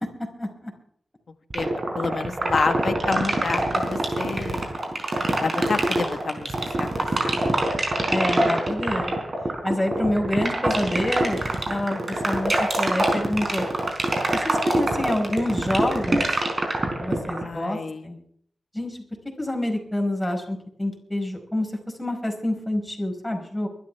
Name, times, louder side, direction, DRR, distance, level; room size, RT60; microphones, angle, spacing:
voice 1, 0.4-0.7 8.1-9.1 9.6-13.6 14.3-16.2 17.0-18.2 18.7-19.0 19.4-21.7 22.0-23.7, left 1 dB, 10° left, 2 dB, 5.0 m, -27 dB
voice 2, 1.5-4.7 5.4-6.5 6.8-7.7 17.4-18.1, left 4 dB, 65° left, 9 dB, 1.3 m, -29 dB
sound 1, 1.5-17.5, right 2 dB, 40° right, 4.8 m, -23 dB
23.5 x 12.5 x 3.4 m, 0.63 s
cardioid pair, 70°, 0 cm